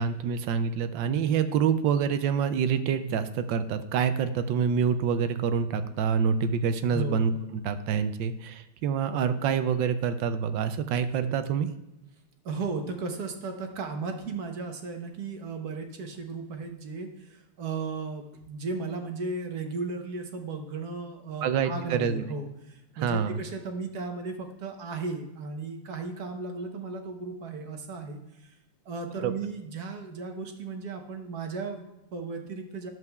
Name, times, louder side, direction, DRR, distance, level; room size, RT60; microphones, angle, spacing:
voice 1, 0.0-11.7 21.4-22.2 23.0-23.4 29.2-29.3, right 7 dB, 75° right, 10 dB, 1.2 m, -26 dB
voice 2, 6.9-7.2 12.4-28.5 28.8-32.9, right 4 dB, 55° right, 4 dB, 1.3 m, -35 dB
11.0 x 7.6 x 2.3 m, 0.92 s
omnidirectional pair, 2.3 m